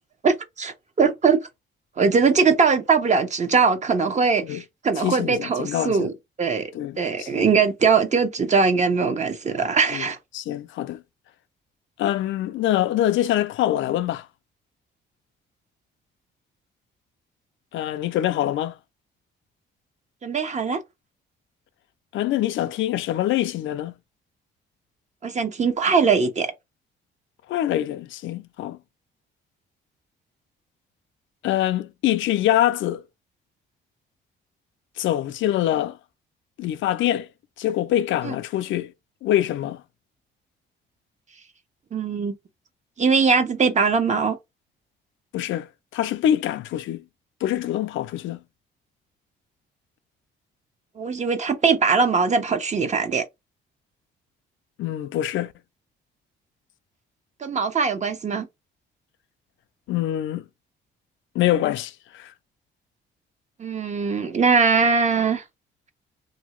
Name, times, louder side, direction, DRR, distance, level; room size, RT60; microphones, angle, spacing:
voice 1, 0.2-1.4 2.0-6.1 6.4-10.2 20.2-20.8 25.2-26.5 38.2-38.3 41.9-42.3 43.0-44.4 51.0-53.2 57.4-58.5 63.6-65.4, right 5 dB, 35° right, 0.7 m, -21 dB
voice 2, 5.0-6.1 6.7-7.5 9.9-10.0 10.3-11.0 12.0-14.3 17.7-18.8 22.1-24.0 27.5-28.8 31.4-33.0 35.0-36.0 36.6-37.3 37.6-38.9 39.2-39.8 45.3-47.0 47.4-48.4 54.8-55.5 59.9-60.5 61.3-62.3, left 12 dB, 75° left, 0.4 m, -24 dB
2.7 x 2.6 x 3.0 m
cardioid pair, 90°, 20 cm